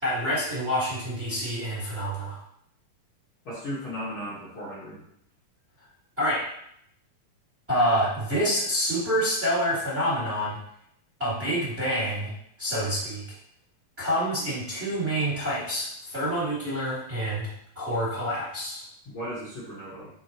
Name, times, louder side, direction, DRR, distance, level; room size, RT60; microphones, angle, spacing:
voice 1, 0.0-2.4 6.2-6.4 7.7-10.6 11.2-12.3 12.6-13.2 14.0-18.8, equal, 20° right, -8 dB, 2.0 m, -27 dB
voice 2, 3.5-5.0 19.1-20.1, equal, 45° left, -8 dB, 2.1 m, -36 dB
9.4 x 4.4 x 3.0 m, 0.72 s
omnidirectional pair, 4.1 m